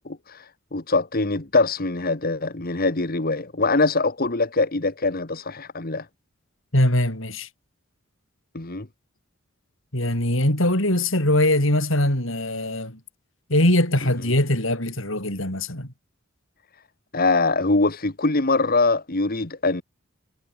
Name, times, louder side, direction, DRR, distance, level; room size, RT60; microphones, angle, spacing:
voice 1, 0.0-6.1 8.5-8.9 17.1-19.8, left 3 dB, 45° left, 1.6 m, -23 dB
voice 2, 6.7-7.5 9.9-13.0 13.5-15.9, left 1 dB, 65° left, 7.5 m, -22 dB
head